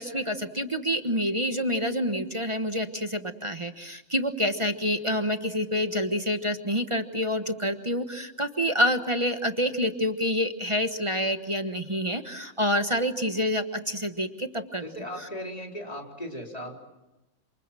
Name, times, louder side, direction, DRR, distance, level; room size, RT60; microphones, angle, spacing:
voice 1, 0.0-14.8, equal, 25° right, 7 dB, 1.2 m, -27 dB
voice 2, 14.8-16.8, equal, 30° left, 1 dB, 4.2 m, -37 dB
28.0 x 27.0 x 7.6 m, 1.0 s
omnidirectional pair, 1.4 m